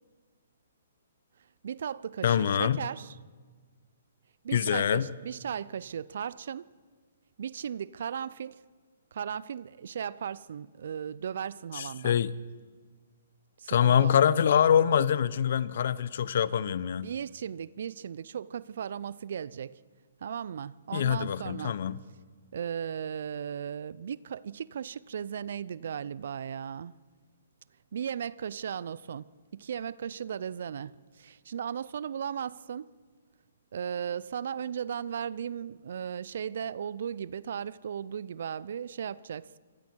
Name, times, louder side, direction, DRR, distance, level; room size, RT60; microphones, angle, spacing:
voice 1, 1.6-3.2 4.4-6.7 7.4-8.6 9.1-12.2 13.6-14.3 17.0-19.8 20.2-21.8 22.5-26.9 27.9-32.9 33.7-39.6, right 8 dB, 60° right, 0.6 m, -36 dB
voice 2, 2.2-2.8 4.5-5.1 11.7-12.3 13.7-17.1 20.9-22.0, left 8 dB, 60° left, 0.8 m, -25 dB
27.0 x 24.5 x 4.7 m
figure-of-eight pair, 130°, 0 cm